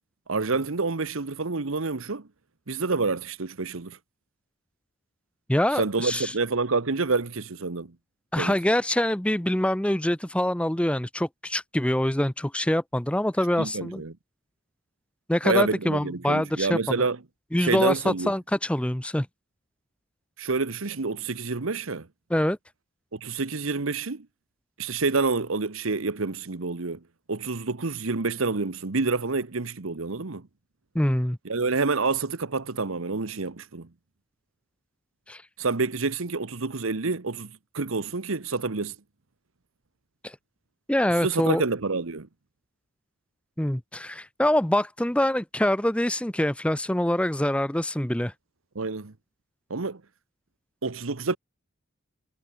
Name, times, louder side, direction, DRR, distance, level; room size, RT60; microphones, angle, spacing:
voice 1, 0.3-2.3 2.7-4.0 5.7-7.9 8.3-8.5 13.6-14.2 15.4-17.2 17.6-18.3 20.4-22.1 23.1-24.3 24.8-27.0 27.3-30.5 31.4-33.9 35.6-38.9 41.2-42.3 48.7-49.1 49.7-50.0 50.8-51.4, right 4 dB, 80° right, 1.1 m, -28 dB
voice 2, 5.5-6.3 8.3-14.0 15.3-17.0 17.5-19.3 22.3-22.6 30.9-31.4 35.3-35.4 40.2-40.4 40.9-41.6 43.6-48.3, left 1 dB, 5° left, 0.6 m, -25 dB
head